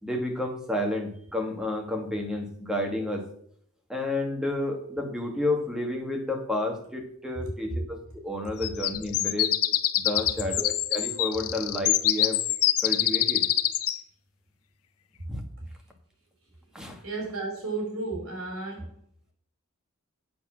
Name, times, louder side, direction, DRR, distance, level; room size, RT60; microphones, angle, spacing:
voice 1, 0.0-3.3 3.9-9.5 10.0-12.4 12.8-13.4 15.3-15.4 16.7-17.0, left 1 dB, 5° right, 2 dB, 1.6 m, -31 dB
sound 1, 8.6-14.0, left 13 dB, 80° left, 0.6 m, -25 dB
voice 2, 17.0-18.9, right 3 dB, 70° right, 0 dB, 4.3 m, -33 dB
8.4 x 6.9 x 6.2 m, 0.64 s
head